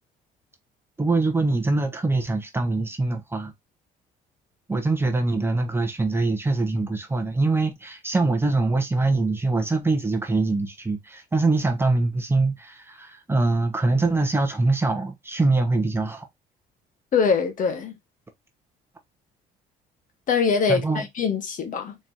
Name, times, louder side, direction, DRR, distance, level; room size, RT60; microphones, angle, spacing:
voice 1, 1.0-3.5 4.7-16.3 20.7-21.0, right 3 dB, 15° right, 0.9 m, -23 dB
voice 2, 17.1-18.0 20.3-22.0, left 5 dB, 50° left, 1.2 m, -23 dB
4.4 x 3.2 x 2.6 m
cardioid pair, 110°, 17 cm